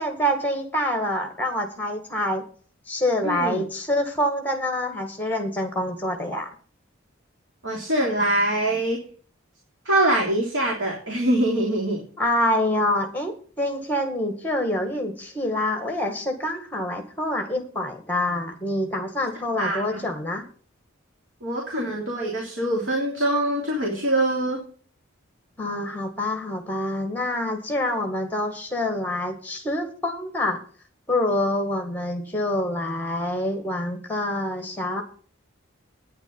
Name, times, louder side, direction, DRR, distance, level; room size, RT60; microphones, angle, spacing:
voice 1, 0.0-2.4 2.9-6.5 12.2-20.4 25.6-30.6 31.1-35.0, left 1 dB, 10° left, 5 dB, 1.8 m, -26 dB
voice 2, 3.2-3.6 7.6-9.0 9.8-12.0 19.6-20.0 21.4-24.6, right 1 dB, 60° right, -2 dB, 3.3 m, -24 dB
9.8 x 9.0 x 5.4 m, 0.43 s
head